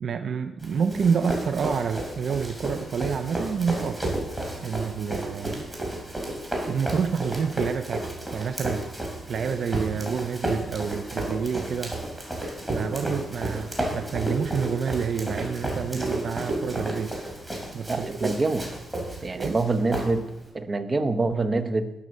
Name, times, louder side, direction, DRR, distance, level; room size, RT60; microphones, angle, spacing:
voice 1, 0.0-4.0 4.6-5.6 6.7-8.9 9.3-12.0 12.7-17.1 17.7-18.3 19.3-19.6, right 6 dB, 55° right, 8 dB, 0.5 m, -28 dB
Run, 0.6-20.5, right 1 dB, 10° right, 3.0 m, -32 dB
voice 2, 17.9-18.7 19.2-20.2 20.5-21.9, right 3 dB, 30° right, 9 dB, 0.9 m, -25 dB
11.0 x 6.4 x 6.5 m, 0.93 s
cardioid pair, 125°, 0 cm